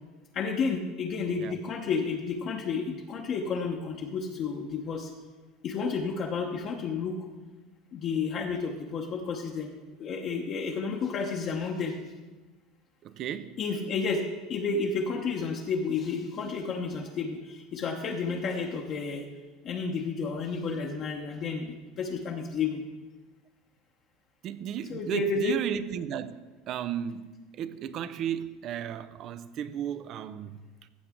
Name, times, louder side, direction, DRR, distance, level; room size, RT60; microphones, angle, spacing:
voice 1, 0.3-5.1 5.6-7.3 7.9-9.7 10.0-12.0 13.6-14.2 14.5-19.3 19.6-22.8 24.9-25.6, left 5 dB, 45° left, 0.9 m, -31 dB
voice 2, 13.0-13.5 24.4-26.3 26.7-30.6, right 9 dB, 50° right, 0.5 m, -34 dB
15.0 x 6.9 x 3.7 m
supercardioid pair, 105°, 0 cm